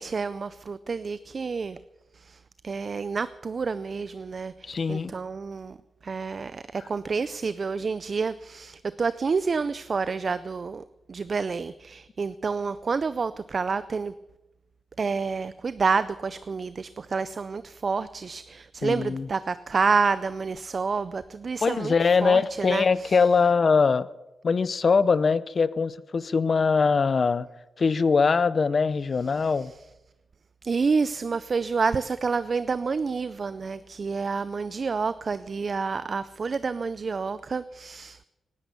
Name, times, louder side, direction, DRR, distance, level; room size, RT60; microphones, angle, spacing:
voice 1, 0.0-1.8 2.1-5.8 6.0-14.1 15.0-21.9 22.2-23.2 29.3-29.7 30.6-38.2, right 5 dB, 50° right, 15 dB, 0.5 m, -29 dB
voice 2, 4.6-5.1 18.8-19.3 21.6-24.1 24.4-27.5 27.8-29.7, left 5 dB, 50° left, 17 dB, 0.6 m, -22 dB
18.5 x 10.5 x 6.9 m, 0.98 s
cardioid pair, 90°, 0 cm